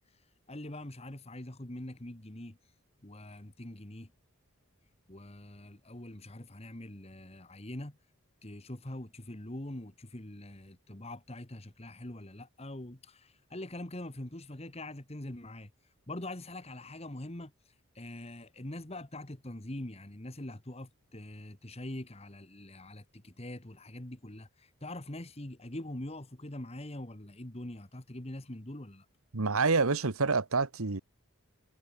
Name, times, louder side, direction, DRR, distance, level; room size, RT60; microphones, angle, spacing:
voice 1, 0.0-2.6 3.0-4.1 5.1-8.0 8.4-15.7 16.1-29.1, left 1 dB, 30° left, 1.6 m, -43 dB
voice 2, 29.3-31.0, right 4 dB, 80° right, 1.3 m, -27 dB
head